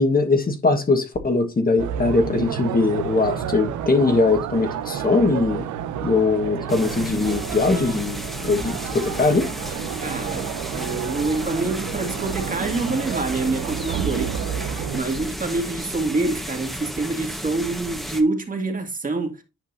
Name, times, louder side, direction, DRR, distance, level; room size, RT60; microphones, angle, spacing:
voice 1, 0.0-5.7 6.0-9.5, left 3 dB, 30° left, 1.5 m, -21 dB
sound 1, 1.8-15.0, right 9 dB, 80° right, 0.9 m, -30 dB
sound 2, 6.7-18.2, equal, ahead, 1.4 m, -33 dB
voice 2, 10.0-19.4, right 3 dB, 25° right, 2.1 m, -26 dB
10.5 x 5.2 x 2.7 m
cardioid pair, 90°, 30 cm